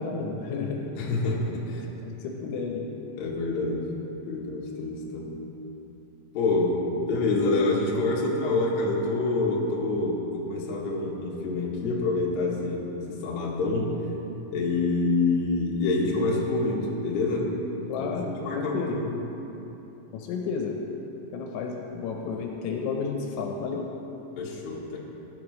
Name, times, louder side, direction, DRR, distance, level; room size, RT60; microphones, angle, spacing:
voice 1, 0.0-0.9 2.0-2.9 17.9-19.0 20.1-20.8 21.3-23.9, left 5 dB, 85° left, 1 dB, 3.5 m, -31 dB
voice 2, 1.0-1.8 3.2-3.9 4.2-5.5 6.3-6.8 7.1-13.9 14.5-17.6 18.0-18.2 18.4-19.1 24.4-25.0, left 3 dB, 65° left, -4 dB, 3.3 m, -27 dB
18.0 x 10.5 x 3.1 m, 3.0 s
omnidirectional pair, 5.9 m